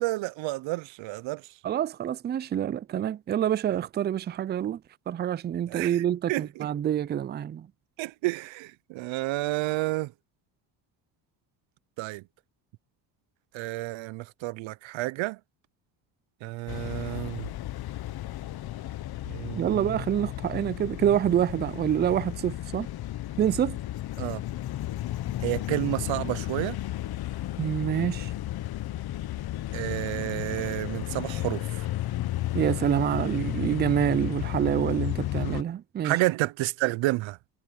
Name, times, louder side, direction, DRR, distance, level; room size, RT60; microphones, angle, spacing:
voice 1, 0.0-1.4 5.7-6.7 8.0-10.1 12.0-12.2 13.5-15.4 16.4-17.5 19.2-20.0 24.2-24.4 25.4-26.8 29.7-31.8 36.0-37.4, right 19 dB, 70° right, 0.8 m, -30 dB
voice 2, 1.6-4.8 5.1-7.7 19.6-22.9 23.4-23.8 27.6-28.3 32.5-36.2, right 10 dB, 25° right, 0.3 m, -27 dB
sound 1, 16.7-35.6, left 14 dB, 50° left, 0.9 m, -33 dB
cardioid pair, 95°, 48 cm